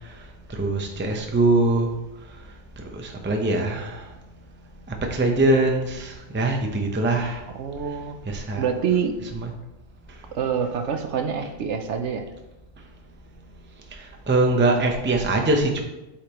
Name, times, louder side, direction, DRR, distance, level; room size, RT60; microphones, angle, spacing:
voice 1, 0.5-1.9 2.9-4.0 5.1-7.4 8.2-8.7 9.3-9.5 14.3-15.8, right 2 dB, 15° right, 2 dB, 0.5 m, -22 dB
voice 2, 7.5-8.2 8.6-9.1 10.3-12.2, right 7 dB, 65° right, 6 dB, 0.9 m, -26 dB
8.5 x 5.1 x 3.0 m, 0.98 s
omnidirectional pair, 1.3 m